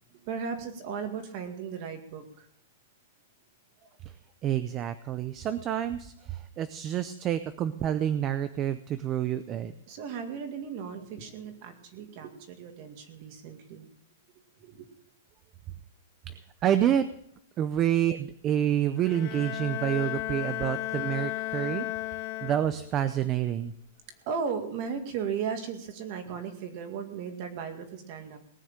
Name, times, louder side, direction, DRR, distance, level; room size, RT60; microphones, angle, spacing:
voice 1, 0.1-2.5 9.9-13.9 14.6-14.9 20.6-20.8 24.3-28.4, right 6 dB, 35° right, 6 dB, 2.1 m, -36 dB
voice 2, 4.4-9.7 16.3-16.4 16.6-17.1 17.6-21.9 22.4-23.7, right 10 dB, 20° right, 12 dB, 0.5 m, -28 dB
Bowed string instrument, 19.0-23.0, left 16 dB, 30° left, 0.9 m, -34 dB
19.0 x 6.6 x 8.9 m, 0.68 s
supercardioid pair, 175°, 0 cm